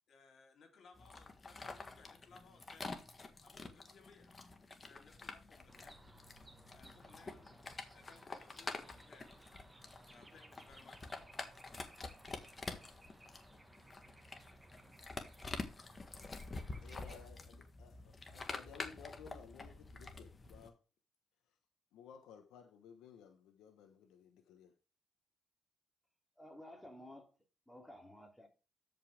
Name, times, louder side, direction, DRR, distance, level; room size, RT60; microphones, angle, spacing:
voice 1, 0.1-2.9 3.4-4.4 4.8-6.0 6.7-7.5 7.9-9.3 10.1-11.0, left 4 dB, 60° left, 3.5 m, -62 dB
sound 1, 1.0-20.7, left 3 dB, 30° left, 1.6 m, -48 dB
sound 2, 5.7-17.3, right 2 dB, 15° right, 1.5 m, -61 dB
voice 2, 16.8-20.8 21.9-24.7, left 7 dB, 90° left, 1.1 m, -57 dB
voice 3, 26.4-27.3 27.7-28.5, left 1 dB, 5° left, 3.1 m, -53 dB
13.0 x 5.5 x 3.5 m
cardioid pair, 90°, 0 cm